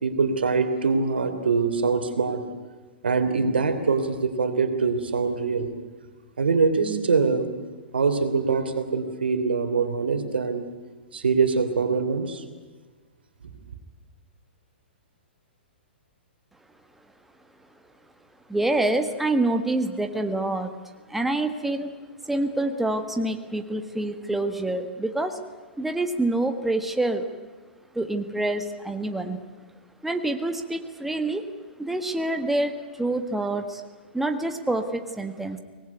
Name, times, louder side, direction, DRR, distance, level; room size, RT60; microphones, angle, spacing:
voice 1, 0.0-2.4 3.0-5.7 6.4-7.5 7.9-10.7 11.1-12.4, right 4 dB, 70° right, 8 dB, 3.2 m, -23 dB
voice 2, 18.5-20.7 21.1-21.9 22.2-25.4 25.8-27.3 27.9-29.4 30.0-31.5 31.8-33.8 34.1-35.6, right 2 dB, 5° right, 6 dB, 1.5 m, -26 dB
24.5 x 19.5 x 9.6 m, 1.4 s
figure-of-eight pair, 115°, 6 cm